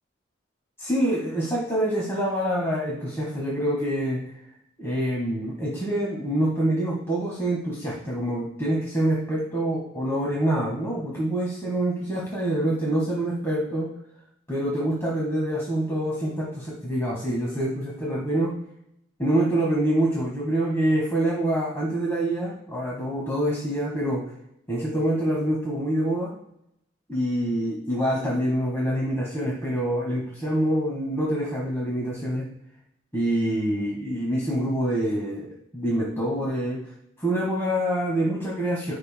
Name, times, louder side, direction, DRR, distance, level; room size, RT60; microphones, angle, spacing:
voice 1, 0.8-4.4 4.8-13.9 14.5-18.5 19.2-24.2 24.7-26.3 27.1-32.4 33.1-35.5 35.7-36.8 37.2-38.9, right 1 dB, 15° left, -5 dB, 1.7 m, -26 dB
15.0 x 5.4 x 2.2 m, 0.79 s
head